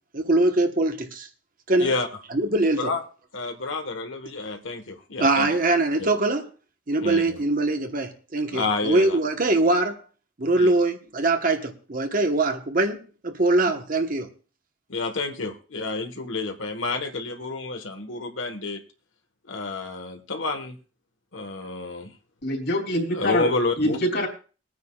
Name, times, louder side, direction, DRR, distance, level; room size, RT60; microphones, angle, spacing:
voice 1, 0.1-1.3 1.7-1.9 2.3-2.9 5.2-6.5 6.9-10.0 10.4-14.3, right 2 dB, 45° right, 1.2 m, -22 dB
voice 2, 3.3-5.5 6.0-6.1 7.0-7.4 8.5-9.2 10.5-10.7 14.9-18.8 19.5-20.8 21.3-22.1 23.1-24.0, left 3 dB, 85° left, 1.5 m, -29 dB
voice 3, 22.4-23.5 23.8-24.3, left 1 dB, 60° left, 3.2 m, -24 dB
21.5 x 9.4 x 2.4 m
head